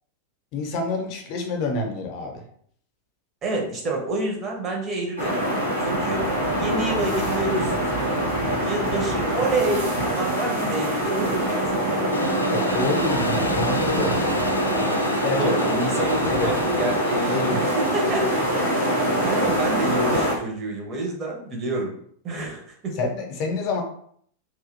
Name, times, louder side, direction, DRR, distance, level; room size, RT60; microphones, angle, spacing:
voice 1, 0.5-2.4 12.4-14.2 15.2-15.4 15.9-16.5 17.3-17.7 23.0-23.8, left 3 dB, 40° left, 2 dB, 0.7 m, -28 dB
voice 2, 3.4-5.4 5.8-7.8 8.6-12.4 15.4-18.4 18.7-21.9 22.2-23.0, right 2 dB, 30° right, 0 dB, 0.9 m, -28 dB
sound 1, 5.2-20.3, equal, 80° right, 1.3 m, -24 dB
Wind instrument woodwind instrument, 10.8-15.0, right 10 dB, 55° right, 0.4 m, -36 dB
Engine, 12.1-18.6, left 1 dB, 85° left, 0.3 m, -33 dB
3.1 x 2.7 x 2.5 m, 0.63 s
figure-of-eight pair, 90°, 0 cm